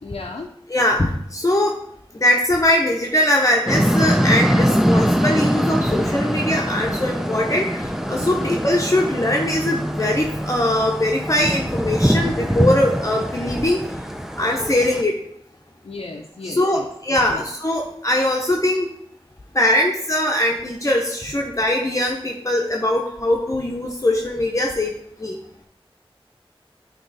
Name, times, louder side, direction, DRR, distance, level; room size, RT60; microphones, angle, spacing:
voice 1, 0.0-0.5 8.3-8.6 15.8-16.8 17.3-17.4, left 3 dB, 85° left, -1 dB, 0.6 m, -34 dB
voice 2, 0.7-1.8 2.1-13.8 14.4-15.1 16.4-18.9 19.5-24.9 25.2-25.4, left 1 dB, 35° left, 0 dB, 0.8 m, -21 dB
sound 1, 3.7-15.0, equal, 5° right, 0.5 m, -22 dB
8.9 x 3.1 x 4.0 m, 0.68 s
wide cardioid pair, 50°, 10 cm